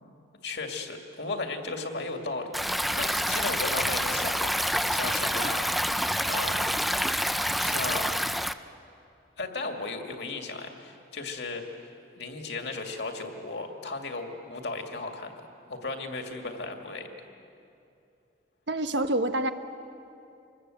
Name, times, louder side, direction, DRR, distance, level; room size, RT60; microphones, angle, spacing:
voice 1, 0.4-5.6 6.3-6.8 7.6-8.1 9.4-11.9 12.2-15.3 15.7-17.1, left 3 dB, 70° left, 3 dB, 2.3 m, -35 dB
Stream, 2.5-8.5, equal, ahead, 0.5 m, -27 dB
voice 2, 18.7-19.5, right 1 dB, 80° right, 8 dB, 1.3 m, -26 dB
26.5 x 20.0 x 7.8 m, 2.6 s
head